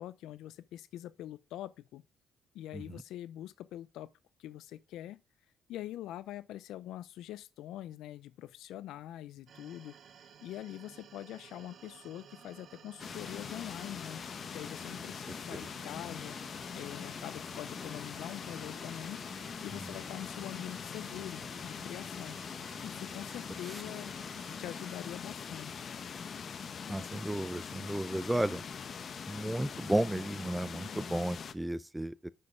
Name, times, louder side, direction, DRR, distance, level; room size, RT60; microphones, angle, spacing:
voice 1, 0.0-2.0 2.5-4.1 4.4-5.2 5.7-10.0 10.4-14.2 14.5-16.4 16.7-19.2 19.6-22.4 22.8-24.1 24.6-25.9, left 13 dB, 85° left, 0.4 m, -44 dB
sound 1, 9.5-25.0, right 7 dB, 60° right, 0.8 m, -55 dB
sound 2, 13.0-31.5, left 6 dB, 50° left, 0.8 m, -42 dB
voice 2, 26.9-28.6 29.3-32.3, right 1 dB, 10° right, 0.4 m, -33 dB
6.3 x 5.4 x 5.4 m
cardioid pair, 90°, 0 cm